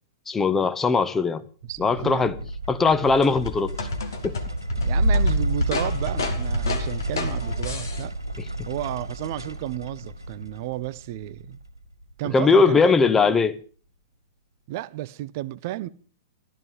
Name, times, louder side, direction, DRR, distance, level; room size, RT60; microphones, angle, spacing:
voice 1, 0.3-1.4 1.8-2.4 2.7-3.8 4.2-4.4 8.4-8.5 12.3-13.6, left 4 dB, 10° left, 0.9 m, -20 dB
voice 2, 1.6-2.4 4.8-8.2 8.7-11.6 12.2-13.0 14.7-15.9, right 15 dB, 45° right, 0.6 m, -32 dB
sound 1, 1.6-12.2, right 1 dB, 90° right, 2.2 m, -29 dB
sound 2, 3.1-8.0, left 3 dB, 65° left, 2.1 m, -32 dB
15.0 x 12.5 x 5.1 m
figure-of-eight pair, 105°, 2 cm